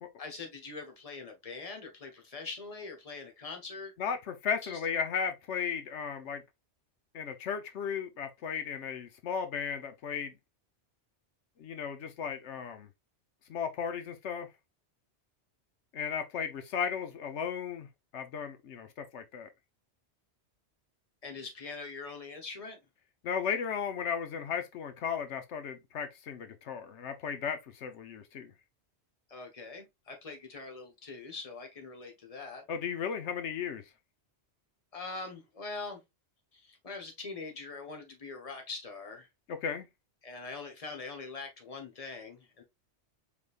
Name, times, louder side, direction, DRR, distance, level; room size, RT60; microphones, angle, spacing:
voice 1, 0.2-3.9 4.6-4.8 21.2-22.8 29.3-32.7 34.9-36.0 36.5-39.3 40.2-42.6, left 4 dB, 35° left, 1.2 m, -43 dB
voice 2, 4.0-6.4 7.1-10.3 11.6-12.9 13.5-14.5 15.9-17.9 18.1-19.5 23.2-28.5 32.7-33.8 39.5-39.9, left 7 dB, 80° left, 1.0 m, -35 dB
5.0 x 3.6 x 2.4 m
omnidirectional pair, 1.2 m